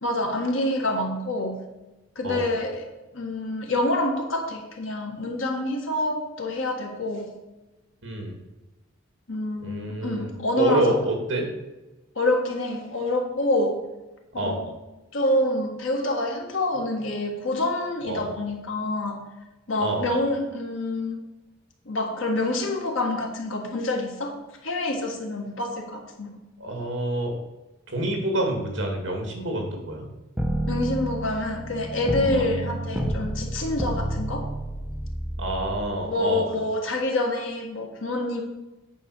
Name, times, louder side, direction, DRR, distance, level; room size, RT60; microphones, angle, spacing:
voice 1, 0.0-1.6 2.1-7.3 9.3-11.0 12.1-13.8 14.3-14.7 15.1-19.2 19.7-21.2 21.8-26.3 30.7-34.5 36.0-38.4, left 1 dB, 70° left, 2 dB, 1.6 m, -27 dB
voice 2, 8.0-8.3 9.6-11.5 14.3-14.6 18.1-18.3 19.8-20.0 26.6-27.4 27.9-30.1 32.3-32.5 35.4-36.5, right 1 dB, 60° right, 2 dB, 2.1 m, -27 dB
sound 1, 30.4-35.9, right 1 dB, 5° right, 0.9 m, -30 dB
9.2 x 4.3 x 6.2 m, 1.1 s
head